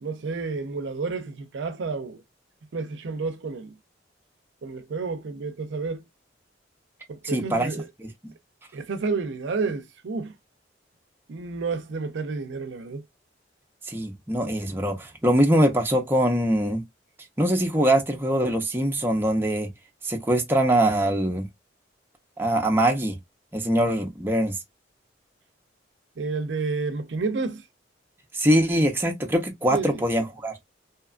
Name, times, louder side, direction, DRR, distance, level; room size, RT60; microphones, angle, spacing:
voice 1, 0.0-2.2 2.7-3.8 4.6-6.0 7.1-7.9 8.7-10.3 11.3-13.0 26.2-27.6 29.7-30.0, right 4 dB, 70° right, 0.4 m, -30 dB
voice 2, 7.2-8.1 13.9-16.8 17.4-19.7 20.0-21.5 22.4-23.2 23.5-24.6 28.3-30.5, right 1 dB, 10° right, 0.5 m, -23 dB
2.8 x 2.3 x 2.4 m
head